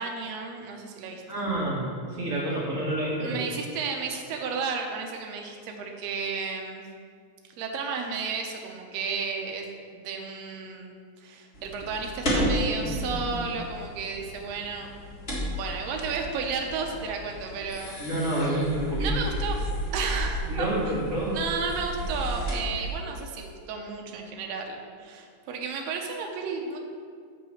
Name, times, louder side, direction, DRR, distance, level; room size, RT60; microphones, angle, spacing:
voice 1, 0.0-1.2 3.2-6.8 7.6-9.6 9.9-10.9 11.2-14.9 15.5-18.0 19.0-19.6 19.9-20.7 21.3-26.8, right 5 dB, 70° right, 2 dB, 1.9 m, -33 dB
voice 2, 1.3-3.4 18.0-19.2 20.5-21.4, right 1 dB, 35° right, -6 dB, 1.7 m, -28 dB
sound 1, 11.5-23.0, equal, 25° left, 1.5 m, -32 dB
6.6 x 5.5 x 7.2 m, 2.1 s
omnidirectional pair, 3.4 m